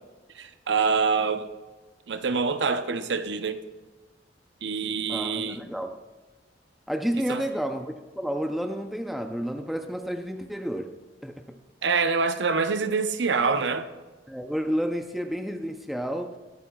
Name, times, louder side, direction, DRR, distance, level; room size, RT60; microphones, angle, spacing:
voice 1, 0.4-1.5 2.1-3.6 4.6-5.6 7.3-7.4 11.8-13.9, right 5 dB, 80° right, 0.7 m, -25 dB
voice 2, 5.1-6.0 6.9-11.6 14.3-16.4, equal, ahead, 0.6 m, -31 dB
22.0 x 8.7 x 2.3 m
head